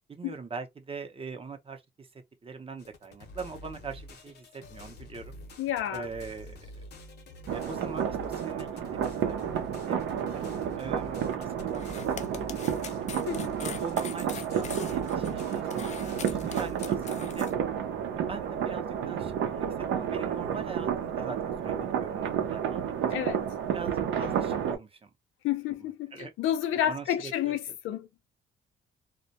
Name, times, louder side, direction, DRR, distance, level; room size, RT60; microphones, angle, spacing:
voice 1, 0.1-5.3 5.9-6.8 7.5-9.4 9.9-11.9 12.1-12.9 13.6-17.5 18.2-23.3 23.7-25.1 26.1-26.3 26.9-27.5, right 4 dB, 30° right, 0.6 m, -42 dB
sound 1, 2.8-17.0, left 1 dB, 55° left, 0.8 m, -47 dB
voice 2, 5.6-6.1 13.3-13.6 23.1-23.4 25.4-28.1, left 11 dB, 90° left, 0.5 m, -30 dB
sound 2, 7.5-24.8, right 8 dB, 75° right, 0.6 m, -31 dB
sound 3, 11.7-17.5, left 7 dB, 35° left, 0.4 m, -42 dB
2.1 x 2.1 x 2.7 m
cardioid pair, 90°, 20 cm